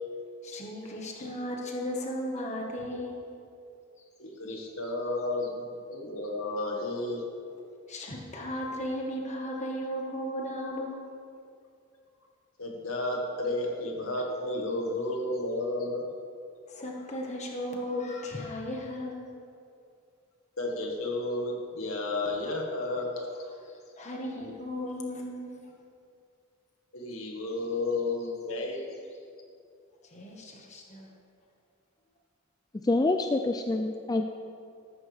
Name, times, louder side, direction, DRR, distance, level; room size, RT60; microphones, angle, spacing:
voice 1, 0.4-3.3 4.0-4.1 7.9-11.0 16.7-19.3 23.3-25.7 30.0-31.1, left 1 dB, 35° left, 0 dB, 1.6 m, -36 dB
voice 2, 4.2-7.2 12.6-16.0 20.6-23.3 26.9-28.8, left 2 dB, 85° left, 0 dB, 1.8 m, -32 dB
voice 3, 32.8-34.3, left 2 dB, 20° left, 5 dB, 0.3 m, -26 dB
13.5 x 13.0 x 3.5 m, 2.4 s
head